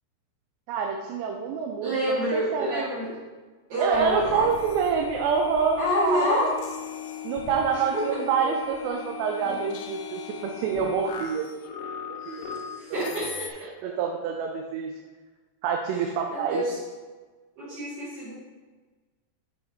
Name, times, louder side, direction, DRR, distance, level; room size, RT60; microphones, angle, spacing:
voice 1, 0.7-2.9 3.8-6.4 7.2-11.5 12.3-12.7 13.0-13.3 13.8-14.9 15.6-16.7, right 6 dB, 90° right, 2 dB, 2.7 m, -27 dB
voice 2, 1.8-3.1 3.7-4.5 5.8-6.5 7.7-7.8 8.4-8.5 12.9-13.9 15.9-16.0 16.3-16.7 17.6-18.3, equal, 60° right, -12 dB, 3.6 m, -28 dB
sound 1, 3.9-13.5, left 8 dB, 90° left, 2.8 m, -38 dB
7.8 x 4.6 x 3.5 m, 1.3 s
omnidirectional pair, 4.8 m